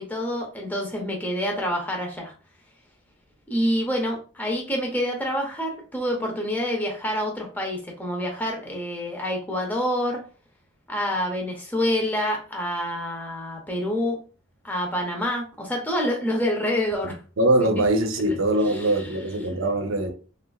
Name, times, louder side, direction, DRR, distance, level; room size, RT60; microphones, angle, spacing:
voice 1, 0.0-2.3 3.5-10.2 10.9-14.2 14.6-17.2 18.7-19.1, equal, 10° left, 0.6 m, -27 dB
voice 2, 17.4-20.1, right 1 dB, 80° right, 0.6 m, -22 dB
3.2 x 2.4 x 2.3 m
head